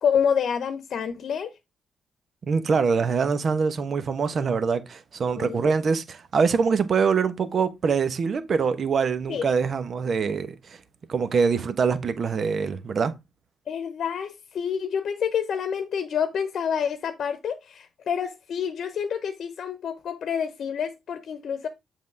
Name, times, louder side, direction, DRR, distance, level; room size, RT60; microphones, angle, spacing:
voice 1, 0.0-1.5 5.3-5.7 9.3-9.5 13.7-21.7, left 7 dB, 65° left, 0.9 m, -28 dB
voice 2, 2.5-10.8 11.1-13.1, right 5 dB, 55° right, 1.1 m, -24 dB
7.5 x 5.7 x 3.4 m
hypercardioid pair, 45°, 0 cm